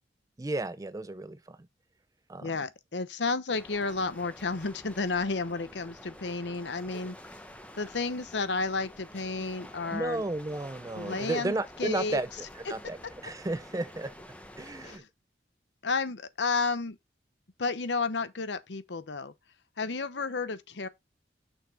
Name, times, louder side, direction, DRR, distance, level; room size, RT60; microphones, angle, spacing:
voice 1, 0.4-1.6 2.3-2.5 9.9-12.3 12.5-13.0 13.2-14.1 14.6-15.0, right 2 dB, 20° right, 0.4 m, -33 dB
voice 2, 2.4-7.2 7.7-10.2 10.9-12.2 14.8-15.1 15.8-17.0 17.6-19.3 19.8-20.9, left 4 dB, 80° left, 0.8 m, -32 dB
sound 1, 3.5-15.0, left 1 dB, 10° left, 0.8 m, -49 dB
6.5 x 4.7 x 4.8 m
head